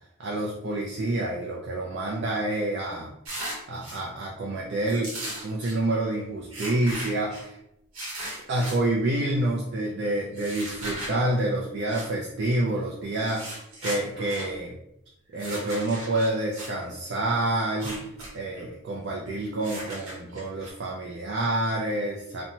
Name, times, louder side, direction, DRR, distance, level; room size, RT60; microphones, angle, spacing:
voice 1, 0.2-3.1 3.7-5.2 5.4-7.6 8.5-14.7 15.3-18.0 18.3-22.4, right 1 dB, 50° right, -3 dB, 0.4 m, -28 dB
sound 1, 3.2-4.0 4.9-5.8 6.5-7.4 7.9-8.8 10.3-11.1 11.9-12.1 13.1-14.5 15.3-16.7 17.6-18.3 18.6-18.7 19.6-20.7, right 1 dB, 70° right, 0.9 m, -37 dB
2.8 x 2.1 x 2.7 m, 0.81 s
head